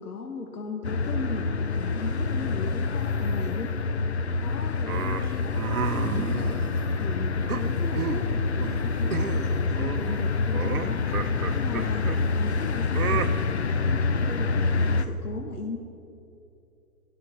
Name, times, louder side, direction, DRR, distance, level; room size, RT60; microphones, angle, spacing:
voice 1, 0.0-3.7 4.4-6.6 7.0-11.2 11.5-15.8, left 4 dB, 75° left, 3 dB, 1.3 m, -37 dB
sound 1, 0.8-15.0, left 4 dB, 45° left, 0.6 m, -27 dB
sound 2, 1.2-14.8, equal, 30° left, 1.1 m, -41 dB
sound 3, 4.9-7.0 7.5-8.3 8.6-8.8 9.1-9.5 9.8-12.2 12.9-13.3, right 7 dB, 70° right, 0.9 m, -32 dB
17.0 x 5.8 x 8.1 m, 2.7 s
hypercardioid pair, 160°, 46 cm